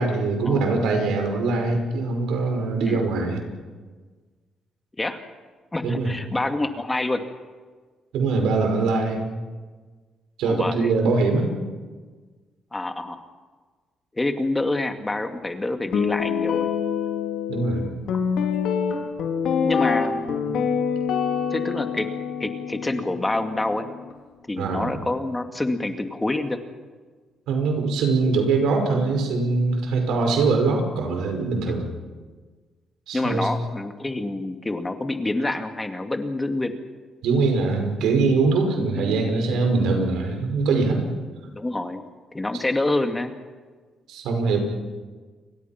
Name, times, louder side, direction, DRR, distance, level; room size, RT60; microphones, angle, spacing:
voice 1, 0.0-3.4 5.8-6.1 8.1-9.2 10.4-11.5 17.5-17.9 24.6-25.0 27.5-31.9 33.1-33.5 37.2-41.0 44.1-44.6, right 3 dB, 85° right, 4 dB, 5.6 m, -22 dB
voice 2, 5.7-7.2 10.4-10.9 12.7-13.2 14.1-16.7 19.6-20.7 21.5-22.1 22.4-23.9 24.5-26.6 31.7-31.8 33.1-36.7 39.0-39.3 41.5-42.0 42.3-43.3, left 2 dB, 15° left, 6 dB, 2.2 m, -27 dB
Guitar, 15.9-24.1, left 6 dB, 75° left, 3.5 m, -26 dB
30.0 x 23.5 x 5.9 m, 1.4 s
cardioid pair, 90°, 0 cm